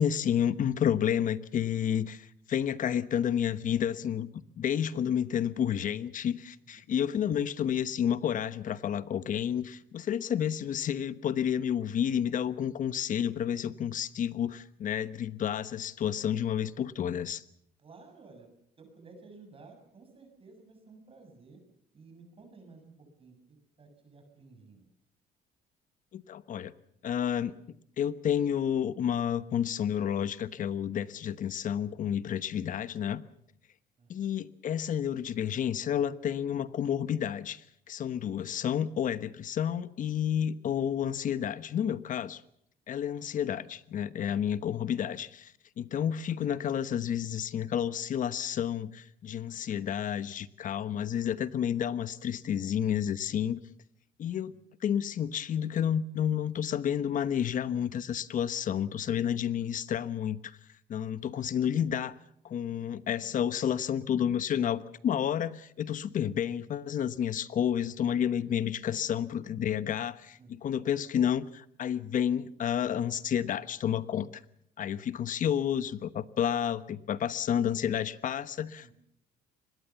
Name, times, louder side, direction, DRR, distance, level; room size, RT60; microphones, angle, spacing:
voice 1, 0.0-2.2 2.5-4.3 4.6-17.4 26.1-26.7 27.0-27.5 28.0-33.2 34.1-37.6 37.9-42.4 42.9-45.5 45.8-53.6 54.2-54.5 54.8-60.4 60.9-62.1 62.4-74.3 74.8-78.9, left 9 dB, 50° left, 15 dB, 1.2 m, -30 dB
voice 2, 17.8-18.5 18.8-21.6 21.9-23.4 23.8-24.8 34.0-34.4 54.2-54.6 70.4-70.8 78.8-78.9, right 3 dB, 35° right, 4 dB, 6.8 m, -54 dB
25.0 x 20.5 x 7.1 m, 0.74 s
cardioid pair, 110°, 17 cm